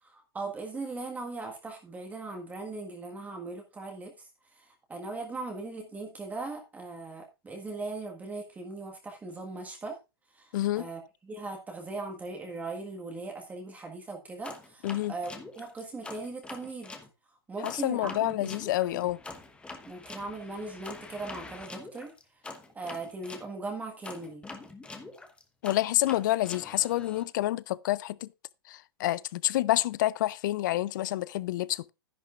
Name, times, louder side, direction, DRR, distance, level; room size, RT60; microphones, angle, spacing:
voice 1, 0.0-4.3 4.5-10.0 10.3-15.3 15.5-16.9 17.5-18.6 18.8-19.1 19.9-22.1 22.7-24.4, right 3 dB, 10° right, 1.6 m, -39 dB
voice 2, 10.5-10.9 14.8-15.1 17.6-19.2 25.6-28.3 28.7-31.9, left 15 dB, 50° left, 0.5 m, -28 dB
sound 1, 14.4-17.1 17.6-23.5 24.0-27.2, left 3 dB, 10° left, 1.1 m, -45 dB
11.0 x 10.5 x 2.5 m
hypercardioid pair, 120°, 13 cm